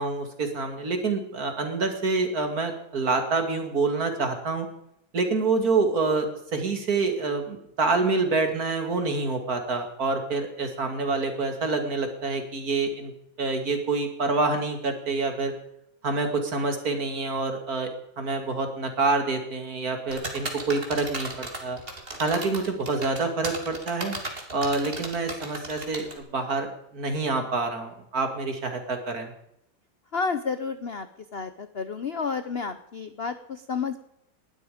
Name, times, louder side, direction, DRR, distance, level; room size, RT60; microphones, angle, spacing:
voice 1, 0.0-4.7 5.1-13.1 13.4-15.5 16.0-17.9 18.2-21.8 22.2-24.1 24.5-29.3, right 3 dB, 45° right, 5 dB, 2.8 m, -27 dB
sound 1, 20.1-26.2, right 2 dB, 25° right, 2.7 m, -35 dB
voice 2, 30.1-31.1 31.3-34.0, left 5 dB, 80° left, 11 dB, 0.5 m, -30 dB
20.0 x 12.0 x 5.1 m, 0.77 s
omnidirectional pair, 2.3 m